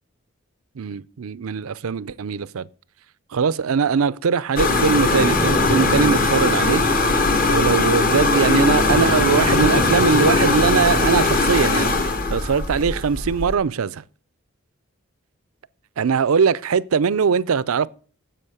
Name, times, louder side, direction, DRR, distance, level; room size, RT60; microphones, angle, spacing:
voice 1, 0.8-2.7 3.3-6.8 7.5-14.0 16.0-17.9, right 6 dB, 80° right, 0.5 m, -21 dB
sound 1, 4.6-13.5, left 3 dB, 40° left, 1.4 m, -19 dB
sound 2, 4.8-7.9 8.8-11.5, right 1 dB, 10° right, 0.6 m, -32 dB
10.0 x 7.7 x 6.5 m
head